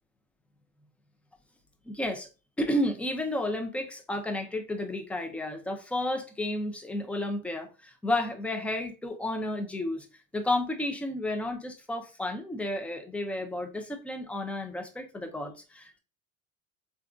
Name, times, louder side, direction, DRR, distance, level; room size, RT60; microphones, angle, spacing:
voice 1, 1.9-2.3 2.6-10.1 10.3-16.0, left 1 dB, 5° left, 0.4 m, -32 dB
3.4 x 2.4 x 2.4 m
supercardioid pair, 100°, 41 cm